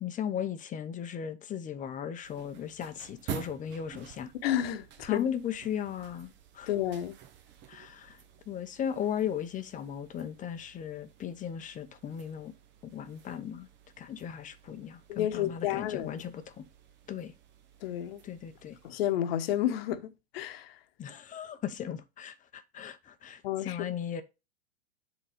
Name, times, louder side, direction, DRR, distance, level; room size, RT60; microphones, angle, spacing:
voice 1, 0.0-4.3 5.0-6.7 7.7-8.2 8.5-12.5 12.8-13.7 14.0-16.6 17.1-17.3 18.2-18.8 21.0-24.2, left 9 dB, 25° left, 0.8 m, -37 dB
sound 1, 2.2-18.9, right 9 dB, 35° right, 1.0 m, -49 dB
voice 2, 4.4-5.2 6.7-7.1 15.1-16.2 17.8-18.2 18.8-20.7 23.4-23.8, left 12 dB, 65° left, 1.1 m, -31 dB
7.4 x 3.9 x 5.1 m
hypercardioid pair, 110°, 32 cm